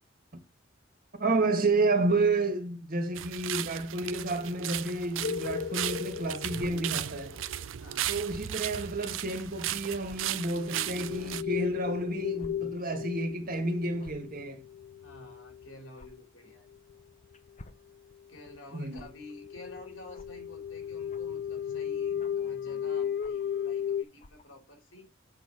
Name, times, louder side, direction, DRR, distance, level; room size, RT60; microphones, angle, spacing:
voice 1, 1.2-7.4 8.1-14.6 18.7-19.0, right 2 dB, 50° right, 1.6 m, -30 dB
sound 1, 3.2-11.4, right 12 dB, 80° right, 0.5 m, -36 dB
sound 2, 5.2-7.6 10.5-16.1 16.9-17.0 17.3-17.5 18.1-18.2 18.4-18.6 18.8-24.0, left 8 dB, 55° left, 0.3 m, -36 dB
sound 3, 6.6-6.7 8.3-8.5 9.3-9.4 10.0-10.2 11.2-11.4 12.4-12.5 12.9-13.0 14.0-14.3 15.9-16.1 17.3-17.8 18.9-19.1 20.1-20.3 21.1-21.4 22.2-22.4 23.2-23.5 24.2-24.5, left 2 dB, 40° left, 0.8 m, -50 dB
voice 2, 7.8-8.1 15.0-16.7 18.3-25.1, left 1 dB, 85° left, 2.9 m, -50 dB
7.7 x 4.3 x 4.8 m
head